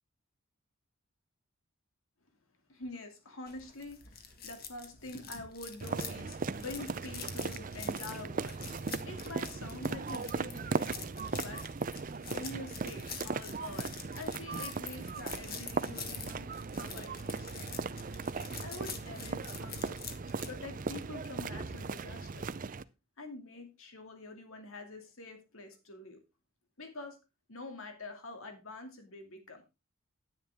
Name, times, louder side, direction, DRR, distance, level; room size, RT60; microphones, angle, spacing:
voice 1, 2.7-8.7 9.1-11.0 11.3-11.6 12.3-17.9 18.6-20.0 20.5-22.5 23.2-26.2 26.8-27.2 27.5-29.6, left 2 dB, 70° left, 5 dB, 2.5 m, -46 dB
sound 1, 3.5-20.5, left 6 dB, 45° left, 1.6 m, -47 dB
sound 2, 5.8-22.8, right 4 dB, 40° right, 0.5 m, -38 dB
10.0 x 10.0 x 3.5 m, 0.27 s
head